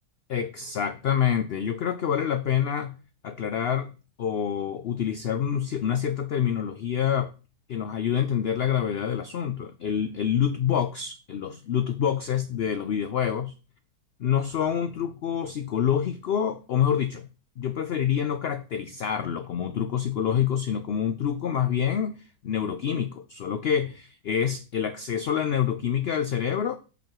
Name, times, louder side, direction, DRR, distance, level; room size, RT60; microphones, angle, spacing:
voice 1, 0.3-2.9 3.2-7.3 7.7-13.5 14.2-17.3 17.6-26.8, left 8 dB, 80° left, 10 dB, 0.5 m, -27 dB
7.7 x 5.3 x 4.6 m, 0.35 s
omnidirectional pair, 1.6 m